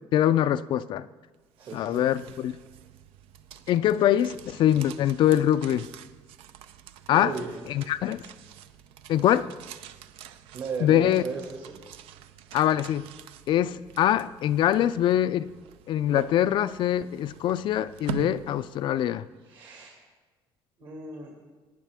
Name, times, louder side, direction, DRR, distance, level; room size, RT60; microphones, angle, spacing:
voice 1, 0.1-1.1 1.7-2.5 3.7-5.9 7.1-7.3 7.7-8.2 9.1-9.5 10.8-11.2 12.5-13.1 13.5-15.5 15.9-19.3, left 11 dB, 60° left, 0.3 m, -23 dB
sound 1, 1.3-19.3, right 10 dB, 90° right, 0.5 m, -45 dB
voice 2, 1.6-2.0 7.1-7.6 10.5-11.8 19.4-19.9 20.8-21.3, right 5 dB, 60° right, 2.0 m, -36 dB
18.5 x 9.3 x 3.5 m
cardioid pair, 115°, 9 cm